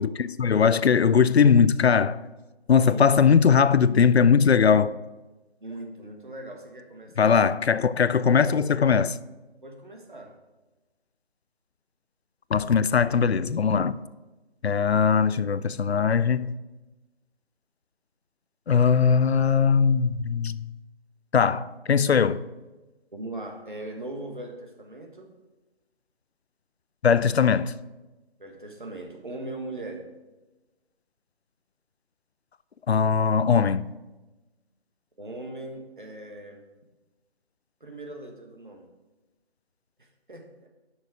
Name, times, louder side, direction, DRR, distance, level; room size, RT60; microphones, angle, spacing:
voice 1, 0.0-2.2 2.7-4.9 7.2-9.2 12.5-14.0 14.6-16.5 18.7-20.7 21.3-22.4 27.0-27.7 32.9-33.9, left 6 dB, 75° left, 0.5 m, -20 dB
voice 2, 2.7-3.1 5.6-7.4 9.6-10.3 23.1-25.3 28.4-30.0 35.2-36.6 37.8-38.9 40.3-40.7, right 2 dB, 50° right, 1.5 m, -39 dB
8.1 x 6.4 x 5.0 m
figure-of-eight pair, 175°, 32 cm